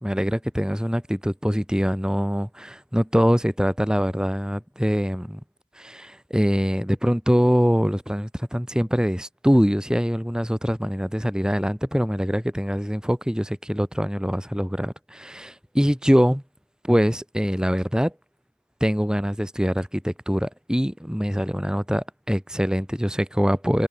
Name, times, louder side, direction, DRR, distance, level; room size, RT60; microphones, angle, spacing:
voice 1, 0.0-5.4 5.8-16.4 16.8-18.1 18.8-23.9, equal, 5° right, 3.5 m, -23 dB
head